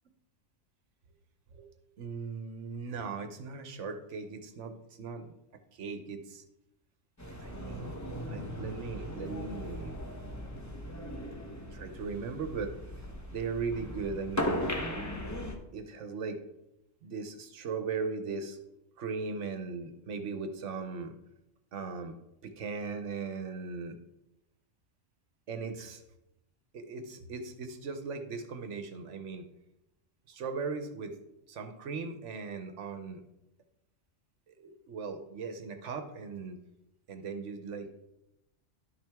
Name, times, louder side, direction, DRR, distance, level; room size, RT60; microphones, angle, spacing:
voice 1, 2.0-5.3 5.7-6.4 7.4-7.9 8.3-10.0 11.7-12.7 13.3-14.6 15.7-16.4 17.0-18.6 19.0-21.1 21.7-22.1 22.4-24.0 25.5-26.0 26.7-29.5 30.3-31.1 31.5-33.2 34.5-36.6 37.1-37.9, right 4 dB, 70° right, 8 dB, 1.1 m, -38 dB
sound 1, 7.2-15.6, equal, 15° left, 0.8 m, -38 dB
11.0 x 6.0 x 3.5 m, 0.88 s
omnidirectional pair, 1.3 m